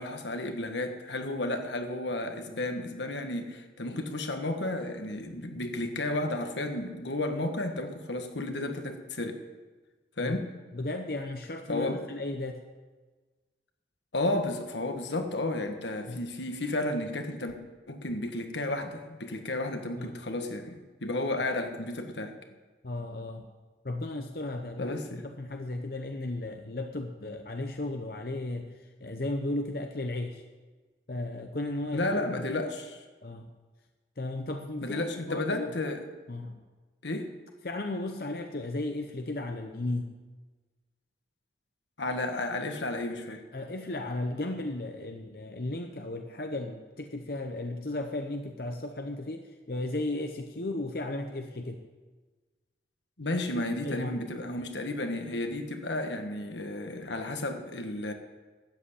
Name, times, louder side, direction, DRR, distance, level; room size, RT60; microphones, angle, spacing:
voice 1, 0.0-9.4 10.2-10.5 11.7-12.0 14.1-17.5 17.9-22.3 24.8-25.2 31.9-33.0 34.8-36.0 37.0-37.3 42.0-43.4 53.2-58.1, left 2 dB, 85° left, 6 dB, 1.6 m, -32 dB
voice 2, 10.7-12.6 16.1-16.2 20.0-20.2 22.8-23.4 23.8-28.7 29.0-30.4 31.1-32.4 33.2-33.5 34.2-35.0 35.3-35.7 36.3-36.6 37.6-40.1 43.5-51.8 53.8-54.2, left 2 dB, 55° left, 4 dB, 0.9 m, -35 dB
13.0 x 7.9 x 8.4 m, 1.3 s
head